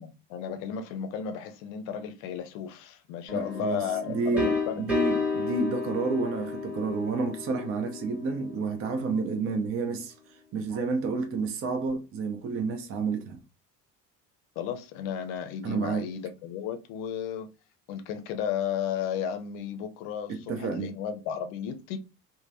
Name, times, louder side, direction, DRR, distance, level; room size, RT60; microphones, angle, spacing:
voice 1, 0.0-4.9 14.6-17.5 17.9-22.0, left 8 dB, 55° left, 0.7 m, -34 dB
sound 1, 3.3-9.0, left 4 dB, ahead, 1.4 m, -32 dB
voice 2, 3.3-10.1 10.5-13.4 15.6-16.1 20.3-20.9, right 4 dB, 30° right, 0.6 m, -30 dB
3.1 x 2.1 x 2.6 m
figure-of-eight pair, 55°, 48 cm